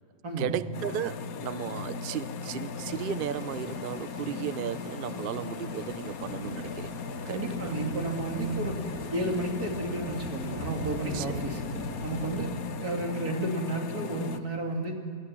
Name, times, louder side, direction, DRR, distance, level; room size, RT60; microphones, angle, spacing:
voice 1, 0.4-7.0 7.2-7.7 11.1-11.4 12.3-12.6, right 9 dB, 55° right, 15 dB, 0.6 m, -35 dB
sound 1, 0.7-14.4, left 5 dB, 75° left, 1.3 m, -37 dB
sound 2, 2.7-12.4, equal, 75° right, 7.9 m, -43 dB
voice 2, 7.3-8.8 9.1-11.6 12.0-12.5 12.8-14.9, right 2 dB, 90° right, 1 dB, 3.3 m, -32 dB
26.0 x 13.0 x 9.9 m, 2.4 s
omnidirectional pair, 1.6 m